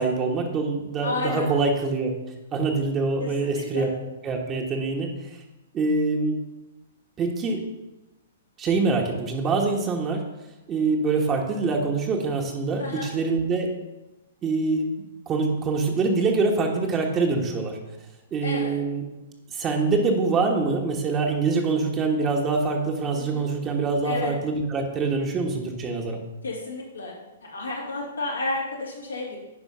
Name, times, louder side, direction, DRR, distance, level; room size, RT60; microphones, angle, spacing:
voice 1, 0.0-2.1 2.5-3.9 4.2-5.1 5.7-6.4 7.2-7.6 8.6-10.2 10.7-13.7 14.4-14.9 15.3-17.8 18.3-19.0 19.5-26.2, right 3 dB, 25° right, 1 dB, 1.4 m, -24 dB
voice 2, 1.0-1.5 3.2-3.3 3.6-3.9 12.8-13.1 18.4-18.7 23.1-23.5 24.0-24.3 26.4-27.1 27.4-29.4, left 3 dB, 85° left, -2 dB, 2.7 m, -31 dB
9.8 x 4.9 x 5.6 m, 1.0 s
figure-of-eight pair, 115°, 0 cm